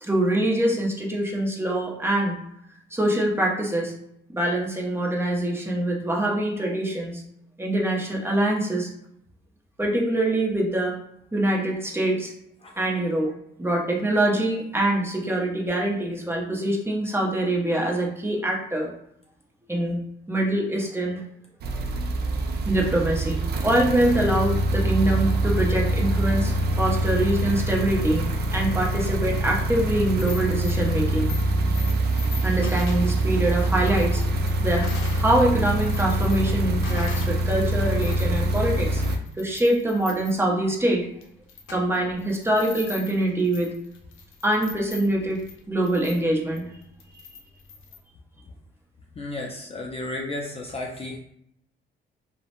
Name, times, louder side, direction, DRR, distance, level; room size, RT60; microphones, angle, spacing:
voice 1, 0.0-2.4 2.9-3.9 4.3-7.2 7.6-8.9 9.8-11.0 11.3-12.3 12.8-13.3 13.6-18.9 19.7-20.0 20.3-21.2 22.7-28.3 28.5-31.3 32.4-34.2 34.6-34.9 35.2-39.0 39.4-41.0 41.7-43.7 44.4-45.4 45.7-46.7, right 1 dB, 10° right, -2 dB, 0.6 m, -24 dB
sound 1, 21.6-39.2, right 1 dB, 55° right, 0.4 m, -24 dB
sound 2, 30.2-35.3 35.6-37.4 37.8-48.0, left 5 dB, 85° left, 0.5 m, -42 dB
voice 2, 49.2-51.2, left 2 dB, 30° left, 0 dB, 0.4 m, -33 dB
2.7 x 2.1 x 2.5 m, 0.75 s
cardioid pair, 90°, 20 cm